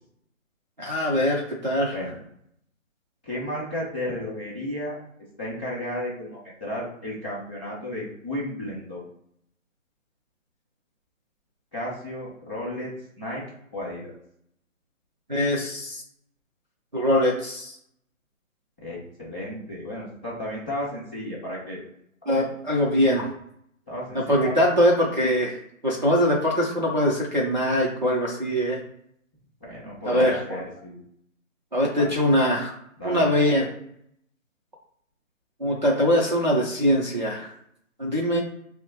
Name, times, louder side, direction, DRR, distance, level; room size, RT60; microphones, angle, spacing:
voice 1, 0.8-1.9 15.3-16.0 16.9-17.8 22.3-23.3 24.1-25.6 25.8-28.8 30.1-30.6 31.7-32.7 33.0-33.7 35.6-37.5 38.0-38.4, equal, 35° right, -4 dB, 0.6 m, -22 dB
voice 2, 3.2-5.0 5.4-9.0 11.7-12.9 13.2-13.4 13.7-14.1 18.8-21.8 23.9-24.4 29.6-31.0 31.9-32.2 33.0-33.4, left 1 dB, 10° left, -13 dB, 1.1 m, -33 dB
5.9 x 2.1 x 2.9 m, 0.72 s
hypercardioid pair, 175°, 41 cm